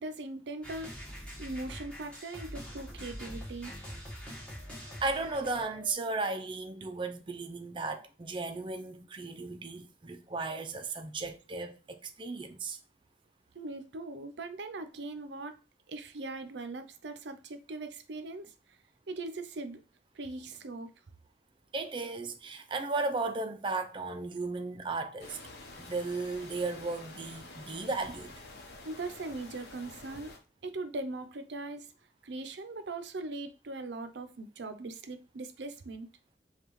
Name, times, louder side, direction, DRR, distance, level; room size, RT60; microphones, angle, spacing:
voice 1, 0.0-3.8 13.5-15.6 15.9-18.8 19.1-19.8 20.1-20.9 28.8-30.3 30.6-31.9 32.2-36.1, right 2 dB, 85° right, 0.5 m, -40 dB
sound 1, 0.6-5.9, equal, 5° left, 1.2 m, -44 dB
voice 2, 5.0-12.8 21.7-25.4 25.8-28.3, right 3 dB, 30° right, 0.4 m, -35 dB
sound 2, 25.2-30.4, left 2 dB, 65° left, 0.9 m, -49 dB
5.4 x 2.4 x 3.0 m
head